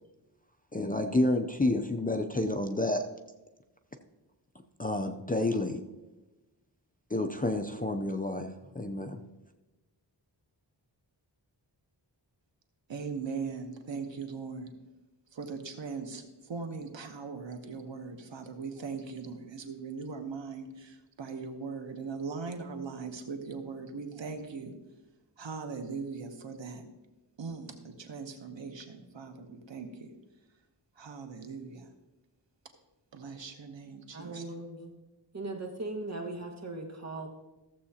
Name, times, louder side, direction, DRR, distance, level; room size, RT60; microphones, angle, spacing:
voice 1, 0.7-3.1 4.8-5.8 7.1-9.2, left 2 dB, 20° left, 6 dB, 0.5 m, -29 dB
voice 2, 12.9-14.7 15.3-16.2 16.5-24.7 25.4-26.8 27.4-30.1 31.0-31.9 33.1-34.4, right 5 dB, 80° right, 6 dB, 1.0 m, -40 dB
voice 3, 34.1-34.9 35.3-37.3, right 2 dB, 35° right, 1 dB, 1.5 m, -38 dB
14.5 x 7.5 x 2.8 m, 1.1 s
wide cardioid pair, 75°, 44 cm